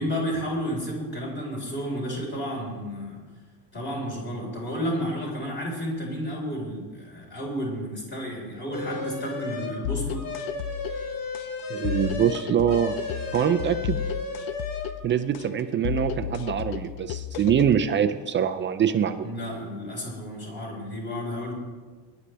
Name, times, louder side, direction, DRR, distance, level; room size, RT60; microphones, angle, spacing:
voice 1, 0.0-3.2 3.7-10.2 19.2-21.5, equal, 25° left, -2 dB, 4.5 m, -31 dB
sound 1, 8.7-9.8 10.1-14.9, left 3 dB, 50° left, 1.6 m, -34 dB
sound 2, 9.8-17.8, left 11 dB, 85° left, 0.6 m, -33 dB
voice 2, 11.7-13.0 13.3-14.0 15.0-19.3, right 9 dB, 30° right, 9 dB, 0.3 m, -24 dB
19.5 x 11.5 x 3.4 m, 1.4 s
cardioid pair, 160°, 45 cm